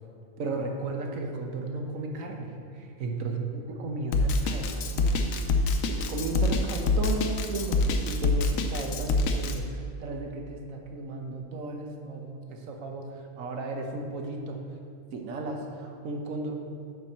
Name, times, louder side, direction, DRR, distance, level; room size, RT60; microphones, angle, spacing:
voice 1, 0.4-5.3 5.6-14.6 15.1-16.6, right 3 dB, 85° right, 2 dB, 1.2 m, -35 dB
Drum kit, 4.1-9.5, left 2 dB, 80° left, 1.0 m, -25 dB
8.2 x 4.5 x 5.4 m, 2.4 s
omnidirectional pair, 1.4 m